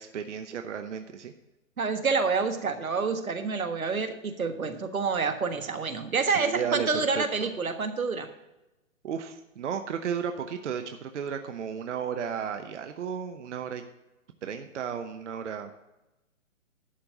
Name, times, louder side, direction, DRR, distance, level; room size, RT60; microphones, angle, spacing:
voice 1, 0.0-1.3 6.3-7.5 9.0-13.8 14.4-15.7, right 7 dB, 60° right, 7 dB, 0.9 m, -34 dB
voice 2, 1.8-8.3, right 4 dB, 85° right, 7 dB, 1.4 m, -28 dB
11.5 x 4.3 x 7.8 m, 0.97 s
hypercardioid pair, 140°, 41 cm